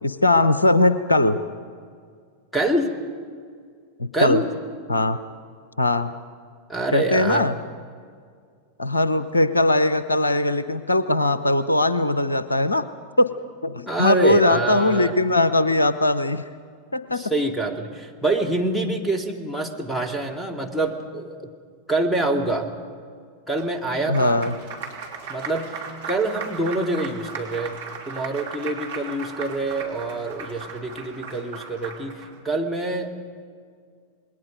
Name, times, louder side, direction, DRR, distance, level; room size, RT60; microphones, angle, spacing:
voice 1, 0.0-1.4 4.0-4.4 4.9-5.2 5.8-6.1 6.9-7.5 8.8-12.8 13.2-13.3 13.6-16.4 16.9-17.2 24.1-24.5, left 2 dB, 80° left, 14 dB, 0.7 m, -20 dB
voice 2, 2.5-2.9 4.1-4.5 6.7-7.5 13.9-15.1 17.1-21.5 21.9-22.7 23.5-24.4 25.3-27.8 28.1-33.1, right 2 dB, 5° left, 5 dB, 2.2 m, -26 dB
Applause, 23.6-32.3, right 5 dB, 60° right, 3.1 m, -37 dB
27.0 x 21.0 x 5.3 m, 2.1 s
figure-of-eight pair, 90°, 0 cm